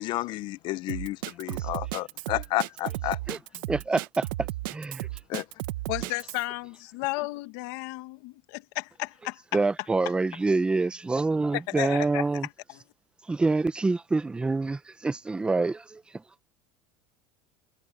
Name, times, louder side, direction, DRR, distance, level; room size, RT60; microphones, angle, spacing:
voice 1, 0.0-3.2 5.3-5.4, left 17 dB, 45° left, 0.5 m, -31 dB
Drum kit, 0.9-6.4, right 18 dB, 85° right, 0.8 m, -34 dB
voice 2, 3.7-4.0 4.7-5.1 9.5-12.5 13.3-16.0, right 3 dB, 10° right, 0.6 m, -26 dB
voice 3, 5.9-9.4 11.5-12.8, left 21 dB, 70° left, 1.5 m, -34 dB
cardioid pair, 150°, 11 cm